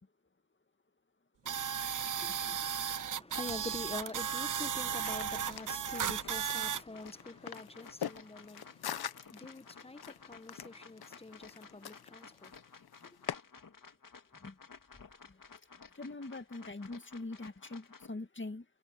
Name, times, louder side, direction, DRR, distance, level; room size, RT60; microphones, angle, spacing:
voice 1, 1.4-12.5 13.0-13.1, left 2 dB, 15° left, 1.2 m, -46 dB
sound 1, 1.5-6.8, right 8 dB, 55° right, 0.7 m, -35 dB
sound 2, 3.5-18.1, left 5 dB, 60° left, 2.3 m, -55 dB
sound 3, 4.9-13.3, left 9 dB, 85° left, 0.9 m, -45 dB
voice 2, 15.9-18.7, left 2 dB, 30° left, 2.1 m, -43 dB
cardioid pair, 55°, 37 cm